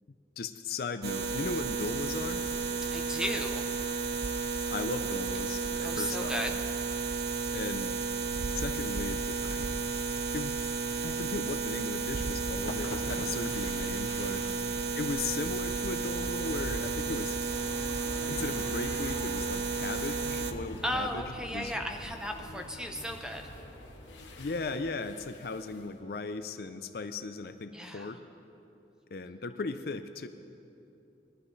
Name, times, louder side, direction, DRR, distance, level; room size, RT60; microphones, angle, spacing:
voice 1, 0.4-2.5 4.7-6.4 7.5-8.0 8.5-9.7 10.3-10.6 11.0-14.4 15.0-17.4 18.3-21.2 21.5-21.8 24.4-28.2 29.1-30.3, left 3 dB, 55° left, 9 dB, 0.5 m, -37 dB
sound 1, 1.0-20.5, right 4 dB, 60° right, 0.7 m, -33 dB
voice 2, 2.9-3.7 5.8-6.6 14.4-14.8 20.8-23.5 27.7-28.2, equal, 5° right, 3 dB, 0.8 m, -35 dB
sound 2, 12.0-25.8, left 1 dB, 90° left, 1.2 m, -44 dB
21.0 x 12.0 x 3.2 m, 2.8 s
head